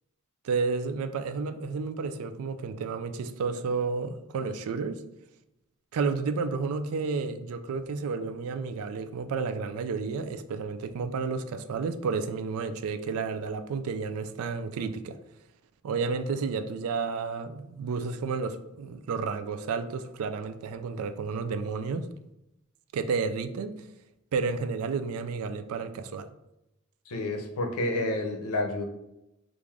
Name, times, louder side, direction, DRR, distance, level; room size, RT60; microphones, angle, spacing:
voice 1, 0.4-5.0 5.9-15.2 15.8-22.1 22.9-23.7 24.3-26.3, right 4 dB, 70° right, 10 dB, 0.3 m, -31 dB
voice 2, 27.1-28.8, left 2 dB, 75° left, 3 dB, 0.6 m, -29 dB
3.2 x 2.5 x 3.5 m, 0.89 s
head